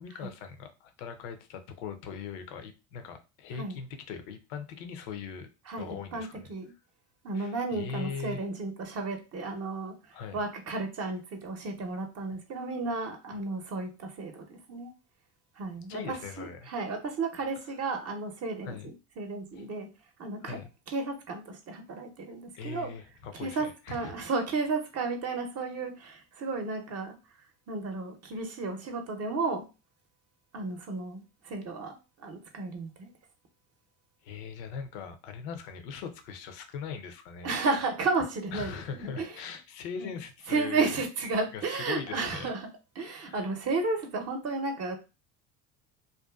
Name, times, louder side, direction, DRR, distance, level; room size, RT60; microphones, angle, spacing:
voice 1, 0.0-5.5 5.8-6.5 7.3-8.4 10.1-10.4 15.9-16.7 18.6-18.9 19.6-19.7 20.4-20.7 22.6-24.2 34.2-37.5 38.5-41.0 41.5-42.5 43.1-43.4, left 6 dB, 75° left, 8 dB, 0.6 m, -40 dB
voice 2, 5.7-6.7 7.2-10.0 10.3-14.9 15.6-18.8 19.2-19.9 20.2-20.6 20.9-22.9 23.4-27.1 27.7-29.7 30.5-33.1 37.4-39.3 40.0-40.1 40.5-42.7 43.0-44.9, right 3 dB, 40° right, 4 dB, 0.7 m, -33 dB
2.6 x 2.3 x 2.2 m, 0.30 s
hypercardioid pair, 80°, 39 cm